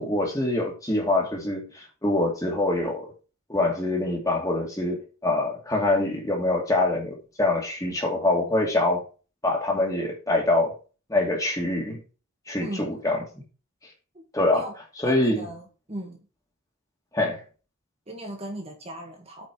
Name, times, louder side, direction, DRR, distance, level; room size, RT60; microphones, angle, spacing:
voice 1, 0.0-3.1 3.5-9.0 9.4-10.8 11.1-12.0 12.5-13.4 14.3-14.7 15.0-15.5 17.1-17.4, left 2 dB, 15° left, -1 dB, 2.4 m, -25 dB
voice 2, 12.6-13.0 14.1-14.3 14.5-14.7 15.0-16.2 18.1-19.5, right 1 dB, 30° right, 2 dB, 1.8 m, -37 dB
8.6 x 5.1 x 4.7 m, 0.33 s
head